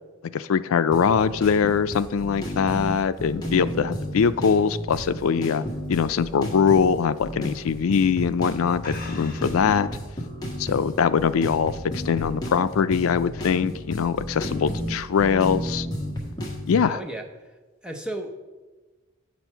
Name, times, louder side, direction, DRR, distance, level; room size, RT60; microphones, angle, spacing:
voice 1, 0.3-5.6 5.9-9.9 10.6-15.9 16.7-17.0, left 6 dB, 85° left, 14 dB, 0.4 m, -22 dB
sound 1, 0.9-16.8, equal, 20° left, 1.4 m, -32 dB
sound 2, 3.0-5.8 6.2-6.5 6.9-7.0 7.8-8.0 8.3-8.4 8.8-9.7, left 3 dB, 40° left, 1.3 m, -44 dB
voice 2, 16.8-17.2 17.8-18.3, right 1 dB, 5° right, 1 dB, 0.7 m, -33 dB
8.1 x 6.2 x 5.6 m, 1.2 s
head